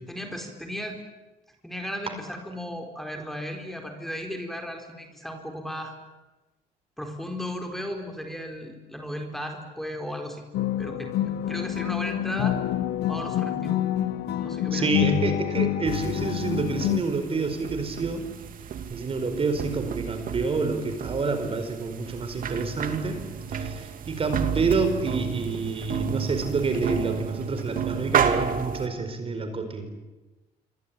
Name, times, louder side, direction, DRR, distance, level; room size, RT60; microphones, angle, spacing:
voice 1, 0.1-1.0 1.6-6.0 7.0-10.4 10.8-12.6 13.1-13.8 14.2-14.9, equal, ahead, 3 dB, 4.3 m, -35 dB
sound 1, 10.5-17.0, left 12 dB, 80° left, 1.4 m, -27 dB
voice 2, 14.7-18.2 18.9-23.2 23.5-29.9, right 4 dB, 35° right, 8 dB, 4.9 m, -28 dB
sound 2, 15.8-28.9, right 7 dB, 55° right, 2.6 m, -31 dB
27.0 x 24.5 x 8.8 m, 1.1 s
cardioid pair, 110°, 17 cm